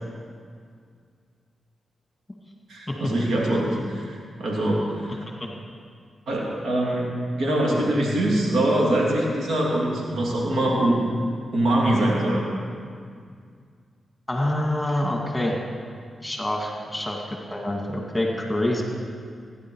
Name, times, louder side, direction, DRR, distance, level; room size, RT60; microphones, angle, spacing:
voice 1, 2.7-5.2 6.3-11.0 11.5-12.4, right 1 dB, 80° right, -3 dB, 3.0 m, -23 dB
voice 2, 14.3-15.6 16.2-18.8, left 1 dB, 15° left, 0 dB, 2.2 m, -26 dB
15.5 x 10.5 x 4.8 m, 2.1 s
cardioid pair, 60°, 0 cm